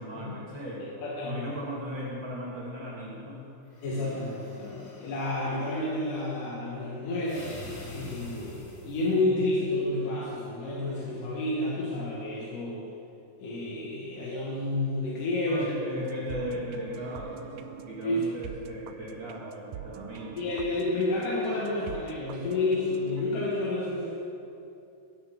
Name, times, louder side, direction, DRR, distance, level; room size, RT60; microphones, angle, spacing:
voice 1, 0.0-0.9 1.2-3.5 15.5-20.5, equal, 40° right, -6 dB, 2.2 m, -37 dB
voice 2, 1.0-1.5 3.8-7.5 7.9-12.8 13.4-15.7 18.0-18.3 20.3-24.1, left 2 dB, 80° left, -6 dB, 3.0 m, -30 dB
sound 1, 3.7-5.4 7.3-9.2, equal, 35° left, 1.6 m, -46 dB
sound 2, 16.0-23.2, right 9 dB, 85° right, 1.6 m, -45 dB
14.0 x 7.1 x 5.7 m, 2.7 s
omnidirectional pair, 3.7 m